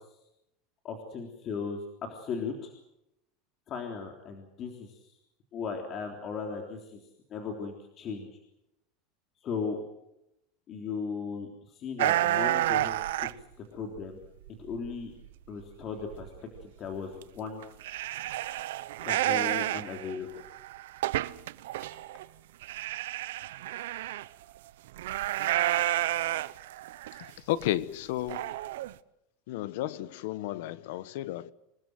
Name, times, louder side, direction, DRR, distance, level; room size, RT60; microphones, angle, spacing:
voice 1, 0.8-2.7 3.7-5.0 5.5-7.0 7.3-8.3 9.4-9.8 10.7-13.3 13.7-14.2 14.6-15.1 15.5-16.3 16.6-17.6 19.0-20.3, left 5 dB, 30° left, 3.5 m, -37 dB
sound 1, 12.0-13.4 14.0-14.9 15.2-15.3 15.8-15.9 16.1-16.3 16.6-16.7 17.2-17.3 17.6-22.3 22.6-24.3 25.0-27.3 27.6-27.7 28.3-28.9, right 15 dB, 90° right, 0.9 m, -30 dB
voice 2, 27.2-28.5 29.5-31.5, left 14 dB, 70° left, 1.3 m, -33 dB
27.0 x 19.5 x 7.8 m
supercardioid pair, 160°, 0 cm